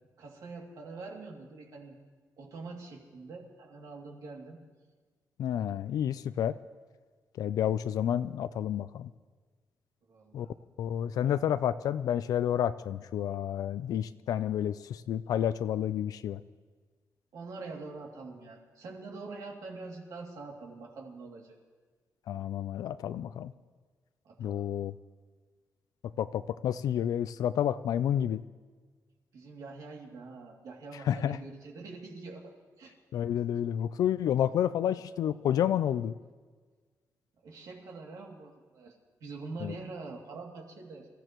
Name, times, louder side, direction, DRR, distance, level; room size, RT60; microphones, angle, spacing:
voice 1, 0.2-2.0 2.4-4.6 10.1-10.5 17.3-21.6 24.2-24.7 29.3-32.9 37.4-41.1, right 3 dB, 65° right, 0 dB, 2.6 m, -44 dB
voice 2, 5.4-6.6 7.4-9.1 10.3-10.5 10.8-16.4 22.3-23.5 24.4-24.9 26.0-28.4 30.9-31.4 33.1-36.2 39.6-39.7, left 10 dB, 70° left, 13 dB, 0.4 m, -30 dB
27.5 x 15.0 x 3.1 m, 1.5 s
wide cardioid pair, 170°, 6 cm